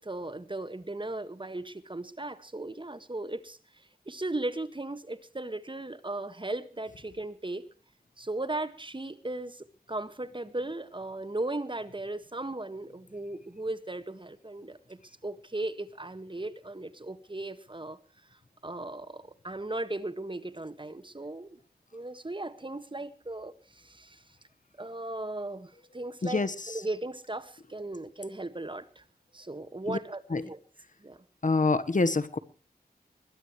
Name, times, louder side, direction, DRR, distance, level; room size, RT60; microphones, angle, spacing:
voice 1, 0.0-3.6 4.1-7.6 8.2-18.0 18.6-21.6 21.9-24.2 24.8-29.0 29.3-30.6 31.0-31.2, right 2 dB, 30° right, 12 dB, 1.7 m, -37 dB
voice 2, 26.2-26.8 29.9-30.0 30.3-30.5 31.4-32.4, left 3 dB, 50° left, 12 dB, 1.3 m, -26 dB
21.5 x 21.0 x 3.2 m, 0.38 s
wide cardioid pair, 75°, 17 cm